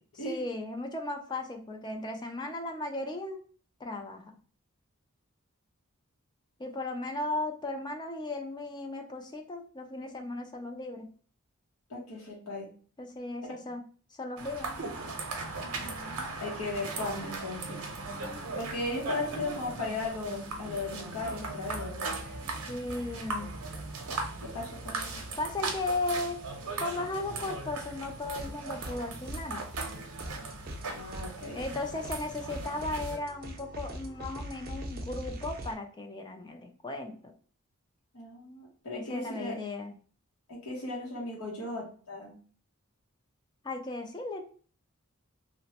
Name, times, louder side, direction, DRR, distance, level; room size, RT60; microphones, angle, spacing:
voice 1, 0.2-3.4 3.8-4.3 6.6-11.1 13.0-13.8 14.2-14.8 18.2-18.7 22.7-23.6 25.4-26.4 26.8-29.6 31.5-37.3 38.9-39.9 43.6-44.4, left 2 dB, 20° left, 4 dB, 0.3 m, -36 dB
voice 2, 11.9-12.7 13.5-13.6 15.6-17.8 18.5-22.2 24.4-25.2 30.9-31.6 38.1-39.6 40.5-42.4, left 2 dB, 90° left, -3 dB, 0.8 m, -37 dB
sound 1, 14.4-33.2, right 3 dB, 90° right, 0.6 m, -38 dB
sound 2, 28.3-29.0 29.3-35.7, equal, 45° right, 0.5 m, -42 dB
2.9 x 2.1 x 2.8 m, 0.43 s
head